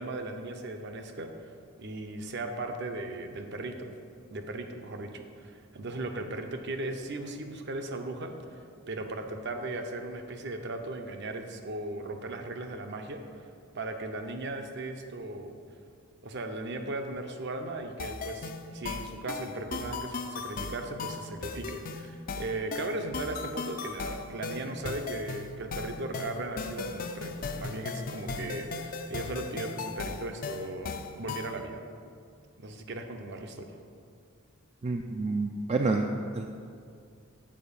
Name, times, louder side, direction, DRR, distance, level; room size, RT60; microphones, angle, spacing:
voice 1, 0.0-1.5 1.8-3.9 4.3-13.2 13.7-15.6 16.2-31.8 32.6-33.7, right 2 dB, 55° right, 5 dB, 0.7 m, -37 dB
sound 1, 18.0-31.6, left 4 dB, 40° left, 0.4 m, -37 dB
voice 2, 34.8-36.5, right 3 dB, 30° right, 3 dB, 0.3 m, -29 dB
7.6 x 4.4 x 6.8 m, 2.3 s
head